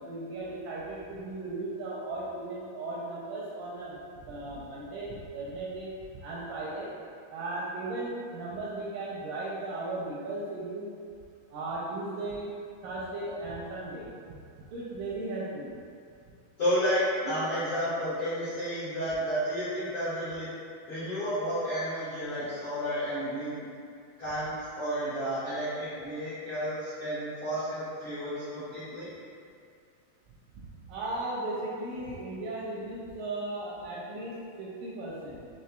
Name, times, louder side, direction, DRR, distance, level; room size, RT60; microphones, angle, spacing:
voice 1, 0.0-4.0 4.2-5.9 6.2-6.9 7.3-10.9 11.5-12.5 12.8-14.4 14.7-15.7 30.6-35.4, right 2 dB, 80° right, -5 dB, 2.0 m, -36 dB
voice 2, 16.6-20.5 20.9-23.7 24.2-29.1, equal, 75° left, -15 dB, 1.1 m, -31 dB
6.4 x 2.9 x 2.2 m, 2.3 s
omnidirectional pair, 4.3 m